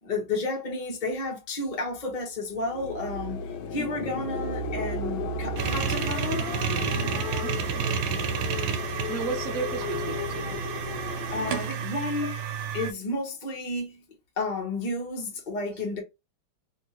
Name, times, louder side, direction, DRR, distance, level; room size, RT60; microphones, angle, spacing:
voice 1, 0.0-3.4 3.7-6.5 11.3-12.3 12.7-14.0 14.4-16.0, left 2 dB, 35° left, 0.8 m, -31 dB
sound 1, 2.5-11.9, left 3 dB, 75° left, 1.4 m, -33 dB
sound 2, 5.6-12.9, right 8 dB, 80° right, 1.5 m, -31 dB
voice 2, 7.4-7.9 9.1-10.5 12.2-12.3, right 5 dB, 55° right, 1.0 m, -34 dB
3.4 x 2.9 x 2.9 m
omnidirectional pair, 2.3 m